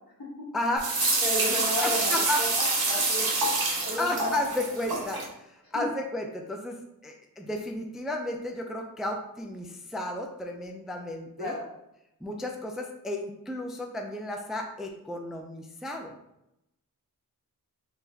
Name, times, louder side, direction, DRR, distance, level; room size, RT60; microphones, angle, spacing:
voice 1, 0.5-0.9 1.8-2.4 4.0-6.8 7.0-11.6 12.2-16.1, left 1 dB, ahead, 2 dB, 0.4 m, -33 dB
sound 1, 0.8-5.3, right 2 dB, 85° right, 0.8 m, -27 dB
voice 2, 1.2-2.5 2.9-3.3 3.8-4.3 5.7-5.8 11.4-11.7, left 1 dB, 70° left, -5 dB, 1.5 m, -32 dB
3.9 x 3.0 x 2.8 m, 0.84 s
wide cardioid pair, 85°, 36 cm